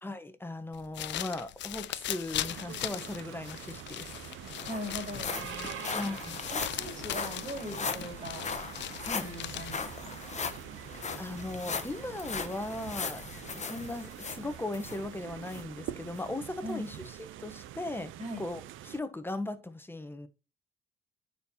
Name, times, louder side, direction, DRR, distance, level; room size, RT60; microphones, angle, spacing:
voice 1, 0.0-4.2 5.9-6.4 9.0-9.3 11.2-13.2 13.5-20.3, left 2 dB, 10° left, 1.1 m, -38 dB
sound 1, 0.7-10.0, left 13 dB, 65° left, 0.4 m, -39 dB
sound 2, 2.3-19.0, right 12 dB, 80° right, 0.6 m, -45 dB
sound 3, 3.8-3.9 4.1-15.0 15.5-15.6 16.2-16.3, left 5 dB, 35° left, 1.0 m, -39 dB
voice 2, 4.7-5.9 6.5-8.5 9.0-10.2 16.6-16.9 18.2-18.5, equal, 35° right, 4.3 m, -41 dB
9.2 x 4.6 x 2.8 m
cardioid pair, 90°, 20 cm